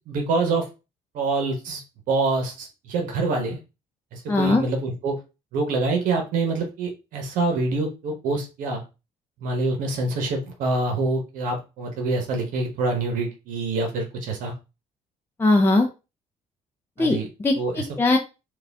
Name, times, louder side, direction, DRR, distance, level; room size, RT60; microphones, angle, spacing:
voice 1, 0.1-0.7 1.1-1.8 2.1-3.6 4.1-5.2 5.5-8.8 9.4-14.5 17.0-17.3 17.6-17.9, right 3 dB, 75° right, 3 dB, 1.0 m, -26 dB
voice 2, 4.3-4.6 15.4-15.9 17.0-17.2 17.4-18.2, left 2 dB, 15° left, 3 dB, 0.5 m, -19 dB
4.7 x 2.4 x 3.5 m, 0.29 s
cardioid pair, 120°, 14 cm